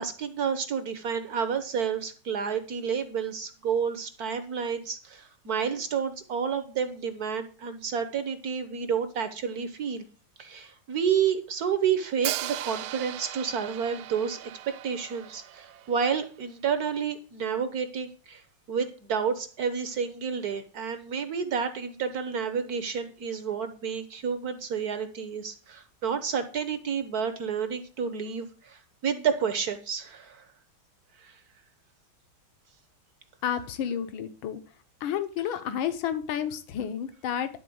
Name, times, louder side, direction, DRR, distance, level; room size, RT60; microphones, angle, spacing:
voice 1, 0.0-10.0 10.4-14.5 14.8-18.4 18.7-30.4 31.2-31.4, right 7 dB, 60° right, 10 dB, 1.2 m, -30 dB
Hi-hat, 12.2-16.2, right 14 dB, 90° right, 1.5 m, -37 dB
voice 2, 33.4-34.6 35.0-37.5, left 9 dB, 80° left, 10 dB, 1.7 m, -30 dB
11.0 x 4.2 x 7.7 m, 0.38 s
omnidirectional pair, 2.2 m